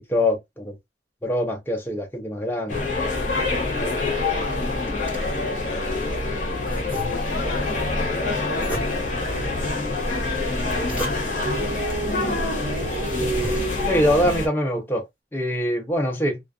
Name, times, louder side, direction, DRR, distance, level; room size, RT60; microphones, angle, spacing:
voice 1, 0.1-0.8 1.2-2.8 13.9-15.1 15.3-16.4, equal, 10° left, 0.5 m, -23 dB
sound 1, 2.7-14.5, left 2 dB, 40° left, 0.9 m, -26 dB
voice 2, 3.8-6.0 6.6-12.7, left 3 dB, 60° left, 0.6 m, -40 dB
sound 2, 4.5-6.2 6.7-7.6 8.5-9.3 10.4-11.5 12.3-12.4 12.8-14.1, right 1 dB, 10° right, 1.1 m, -36 dB
sound 3, 7.4-13.9, right 4 dB, 80° right, 0.6 m, -34 dB
2.4 x 2.3 x 2.3 m
head